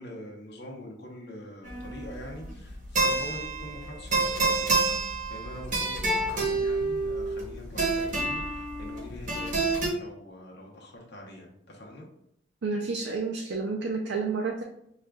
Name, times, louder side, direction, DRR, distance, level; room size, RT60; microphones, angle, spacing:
voice 1, 0.0-5.0 5.3-12.1, equal, 65° left, -1 dB, 0.8 m, -43 dB
sound 1, 1.6-9.9, right 3 dB, 45° right, 0.9 m, -28 dB
voice 2, 12.6-14.6, right 4 dB, 75° right, 0 dB, 0.4 m, -30 dB
6.1 x 2.4 x 2.2 m, 0.76 s
head